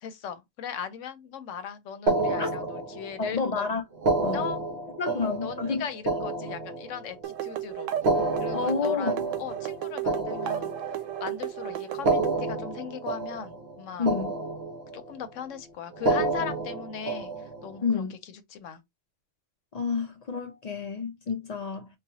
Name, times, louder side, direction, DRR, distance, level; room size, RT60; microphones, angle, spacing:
voice 1, 0.0-3.6 4.3-4.6 5.1-7.9 8.4-10.7 11.2-14.1 14.9-18.8, left 8 dB, 80° left, 1.0 m, -38 dB
sound 1, 2.1-3.3 3.9-7.3 7.9-11.2 11.9-13.8 14.1-15.1 15.9-17.8, right 2 dB, 55° right, 1.1 m, -30 dB
voice 2, 3.2-3.8 4.2-4.4 5.0-5.8 8.5-9.3 14.0-14.3 17.8-18.1 19.7-21.9, left 5 dB, 55° left, 0.4 m, -29 dB
sound 2, 7.2-12.4, right 11 dB, 85° right, 1.0 m, -33 dB
4.1 x 2.2 x 2.7 m
omnidirectional pair, 1.3 m